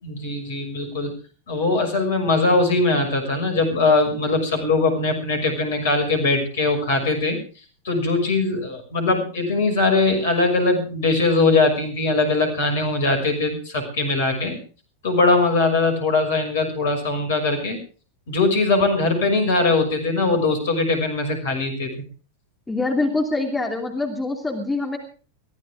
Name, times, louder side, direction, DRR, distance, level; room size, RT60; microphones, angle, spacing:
voice 1, 0.0-1.1 1.5-7.4 7.8-14.6 15.0-17.8 18.3-22.0, left 3 dB, 60° left, 6 dB, 6.2 m, -21 dB
voice 2, 22.7-25.0, left 2 dB, 10° left, 2 dB, 2.8 m, -24 dB
23.0 x 15.5 x 3.5 m, 0.38 s
figure-of-eight pair, 90°, 0 cm